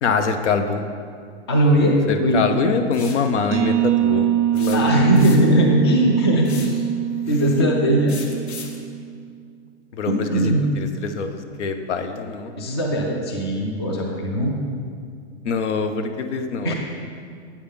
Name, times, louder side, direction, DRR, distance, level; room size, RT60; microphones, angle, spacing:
voice 1, 0.0-0.8 2.1-4.3 4.5-5.0 7.3-7.7 9.9-12.5 15.4-16.7, left 5 dB, 85° left, 7 dB, 0.7 m, -24 dB
voice 2, 1.5-2.5 4.7-6.9 7.3-8.2 10.1-10.7 12.6-14.5 16.6-16.7, right 1 dB, 25° left, 0 dB, 0.3 m, -19 dB
sound 1, 2.9-3.3 4.6-5.6 6.4-6.8 8.1-8.8, left 5 dB, 70° left, 1.1 m, -37 dB
sound 2, 3.5-9.1, right 11 dB, 90° right, 0.5 m, -23 dB
8.7 x 5.6 x 3.5 m, 2.2 s
hypercardioid pair, 175°, 35 cm